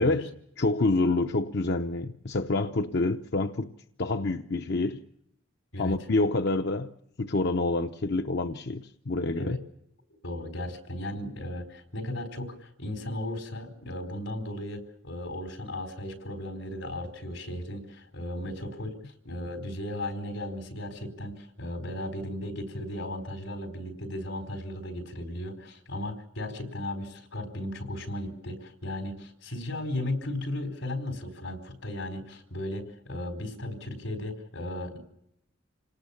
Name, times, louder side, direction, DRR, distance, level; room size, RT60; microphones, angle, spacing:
voice 1, 0.0-3.7 4.0-5.0 5.8-6.9 7.2-9.6, left 2 dB, 60° left, 0.8 m, -27 dB
voice 2, 10.2-35.1, left 1 dB, 85° left, 4.5 m, -36 dB
27.5 x 18.5 x 7.2 m
head